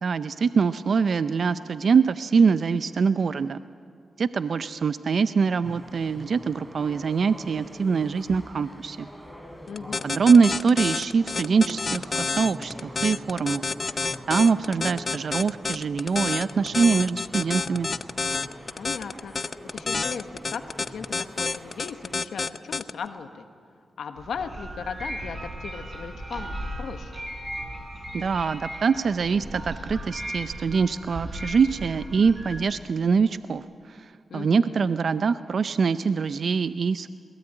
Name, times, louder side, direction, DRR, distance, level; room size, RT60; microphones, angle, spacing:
voice 1, 0.0-3.6 4.2-9.1 10.0-14.0 14.3-17.9 28.1-37.1, right 5 dB, 65° right, 13 dB, 0.5 m, -23 dB
sound 1, 5.6-22.2, equal, 10° right, 3.5 m, -44 dB
voice 2, 9.7-10.3 18.7-23.4 24.0-27.1 34.3-34.9, left 6 dB, 80° left, 7 dB, 1.3 m, -37 dB
sound 2, 9.8-22.9, left 4 dB, 50° left, 0.6 m, -28 dB
sound 3, 24.2-32.6, right 1 dB, 40° right, 5.7 m, -37 dB
22.0 x 17.5 x 8.9 m, 2.2 s
supercardioid pair, 45°, 0 cm